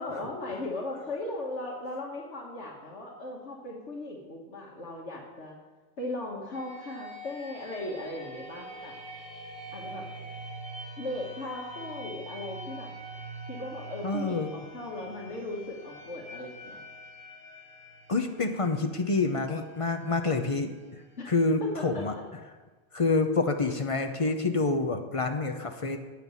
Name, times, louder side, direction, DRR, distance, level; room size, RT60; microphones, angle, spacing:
voice 1, 0.0-5.6 6.0-8.9 9.7-10.1 11.0-12.9 13.5-16.8 21.2-21.3 21.6-22.2, left 2 dB, 70° left, -2 dB, 1.6 m, -37 dB
sound 1, 6.5-22.2, right 1 dB, 5° right, 3.7 m, -45 dB
voice 2, 14.0-14.5 18.1-20.7 21.3-22.1 22.9-26.0, left 3 dB, 35° left, 6 dB, 0.6 m, -27 dB
9.0 x 5.9 x 8.1 m, 1.3 s
omnidirectional pair, 1.2 m